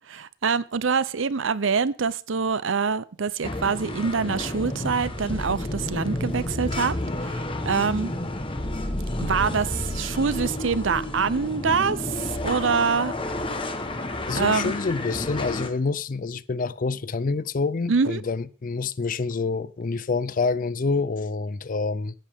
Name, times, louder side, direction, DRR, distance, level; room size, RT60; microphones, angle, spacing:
voice 1, 0.1-6.9 7.2-8.1 9.2-13.1 14.3-14.7 17.9-18.2, right 5 dB, 75° right, 0.6 m, -25 dB
sound 1, 3.4-15.7, left 1 dB, 25° left, 1.2 m, -30 dB
voice 2, 14.3-22.1, left 4 dB, 45° left, 0.5 m, -27 dB
15.0 x 10.0 x 3.6 m
head